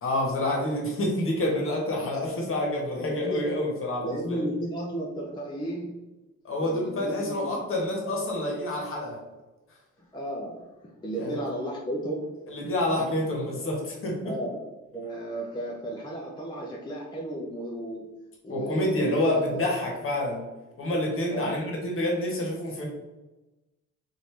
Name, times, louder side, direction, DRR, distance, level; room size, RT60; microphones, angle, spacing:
voice 1, 0.0-4.5 6.4-9.2 11.1-11.4 12.5-14.3 18.5-20.4 20.8-22.9, left 1 dB, 45° left, -1 dB, 1.2 m, -28 dB
voice 2, 3.0-3.5 4.0-6.0 6.6-7.6 10.0-10.7 11.0-12.3 14.2-14.7 14.9-18.0 18.4-19.6 21.3-21.6, right 1 dB, 15° left, -3 dB, 0.5 m, -34 dB
3.2 x 2.6 x 3.2 m, 1.1 s
cardioid pair, 90°, 30 cm